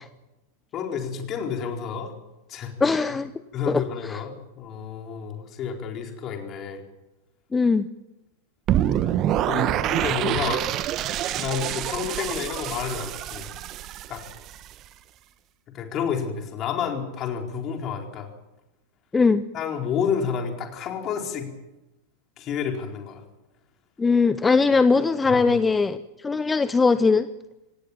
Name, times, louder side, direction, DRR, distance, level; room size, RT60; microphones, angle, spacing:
voice 1, 0.7-2.1 2.5-2.7 3.5-6.8 9.5-10.6 11.4-13.5 14.1-14.2 15.7-18.3 19.5-21.5 22.4-23.2 25.3-25.4, left 7 dB, 30° left, 3 dB, 4.3 m, -30 dB
voice 2, 2.8-3.3 3.7-3.8 4.1-4.2 7.5-7.9 19.1-19.4 24.0-27.3, left 4 dB, 15° left, 14 dB, 0.8 m, -20 dB
sound 1, 8.7-14.7, right 11 dB, 35° right, 1.3 m, -26 dB
26.0 x 18.0 x 7.3 m, 0.98 s
figure-of-eight pair, 90°, 0 cm